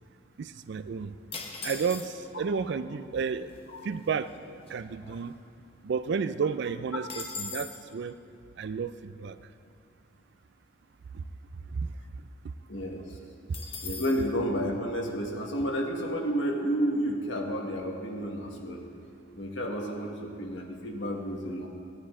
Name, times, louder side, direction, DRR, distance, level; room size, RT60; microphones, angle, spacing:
voice 1, 0.4-1.1 1.6-3.5 3.8-4.3 4.7-5.3 5.8-8.2 8.6-9.4 11.1-11.2 11.7-11.9, right 5 dB, 60° right, 13 dB, 0.4 m, -32 dB
sound 1, 1.3-2.4 3.2-3.3 3.5-3.8 4.3-5.7 6.1-6.2 6.5-7.9 13.5-14.3, left 4 dB, 30° left, 1.1 m, -40 dB
voice 2, 12.7-13.0 13.8-18.8 19.3-21.7, equal, 70° left, 0 dB, 1.4 m, -31 dB
15.0 x 9.6 x 3.7 m, 2.5 s
head